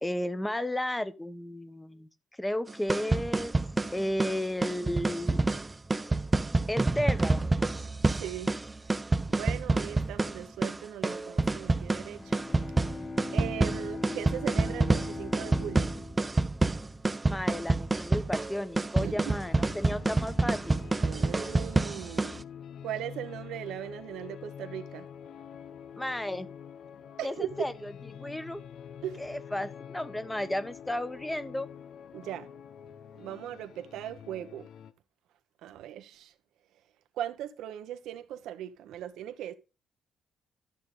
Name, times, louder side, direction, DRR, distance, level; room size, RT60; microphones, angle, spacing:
voice 1, 0.0-2.1 2.4-3.5 3.9-5.5 6.7-7.5 17.3-20.8 26.0-26.5 27.2-27.9 28.2-28.6 29.2-31.7, left 1 dB, 10° left, 1.2 m, -33 dB
sound 1, 2.7-22.4, right 2 dB, 20° right, 0.8 m, -28 dB
voice 2, 8.1-8.5 9.3-12.5 13.3-15.9 19.0-19.3 21.0-22.4 22.8-25.1 27.2-27.5 29.0-29.2 32.1-32.5 33.2-34.7 35.6-36.3 37.1-39.5, right 11 dB, 85° right, 1.1 m, -39 dB
Bowed string instrument, 12.0-17.6, left 3 dB, 25° left, 1.1 m, -41 dB
sound 2, 19.2-34.9, left 8 dB, 70° left, 0.9 m, -47 dB
12.5 x 6.6 x 3.9 m
cardioid pair, 90°, 0 cm